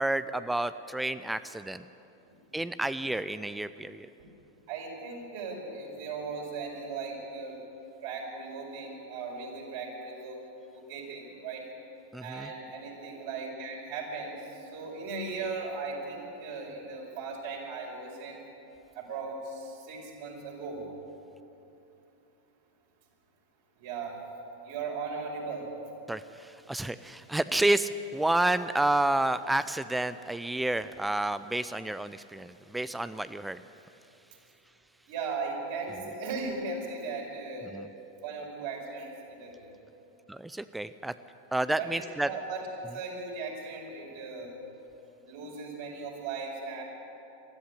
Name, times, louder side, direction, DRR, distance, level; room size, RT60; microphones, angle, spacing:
voice 1, 0.0-1.8 2.5-4.1 12.1-12.5 26.1-33.6 37.7-37.9 40.3-41.1 41.5-42.3, right 1 dB, 5° right, 13 dB, 0.5 m, -30 dB
voice 2, 4.7-7.6 8.0-10.4 10.7-11.7 12.2-18.4 18.9-20.9 23.8-24.2 24.6-25.7 35.1-37.7 38.2-39.8 41.8-42.6 42.9-44.5 45.2-46.8, right 4 dB, 50° right, -1 dB, 5.3 m, -37 dB
20.5 x 14.0 x 10.0 m, 2.9 s
figure-of-eight pair, 90°, 0 cm